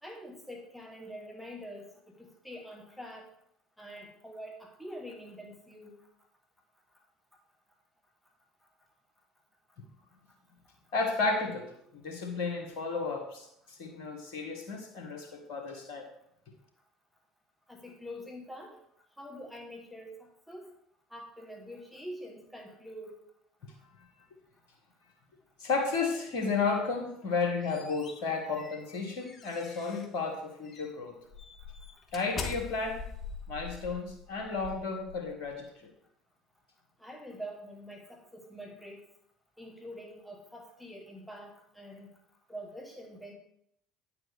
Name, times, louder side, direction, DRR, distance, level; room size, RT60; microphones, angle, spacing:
voice 1, 0.0-3.2 3.8-6.0 17.7-18.7 19.2-20.7 21.1-23.1 37.0-39.0 39.6-42.1 42.5-43.3, equal, ahead, 0 dB, 2.2 m, -45 dB
voice 2, 10.9-16.1 25.6-31.2 32.1-33.0 33.5-35.9, left 4 dB, 65° left, 3 dB, 1.5 m, -33 dB
sound 1, 27.2-30.2 30.7-30.9 31.3-35.6, left 5 dB, 40° left, 1.0 m, -43 dB
9.0 x 6.9 x 3.4 m, 0.72 s
figure-of-eight pair, 60°, 0 cm